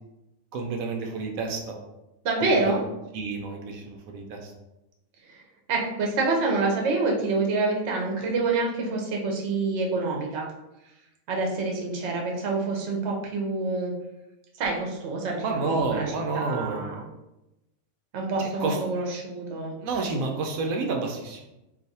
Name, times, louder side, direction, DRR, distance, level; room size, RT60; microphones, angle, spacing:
voice 1, 0.5-1.7 2.4-2.8 3.1-4.5 15.4-16.9 18.4-18.8 19.8-21.4, right 3 dB, 90° right, 2 dB, 1.0 m, -30 dB
voice 2, 2.2-2.8 5.7-10.5 11.3-13.9 14.6-17.0 18.1-19.7, right 3 dB, 60° right, 0 dB, 0.9 m, -27 dB
2.6 x 2.4 x 4.0 m, 0.94 s
omnidirectional pair, 1.4 m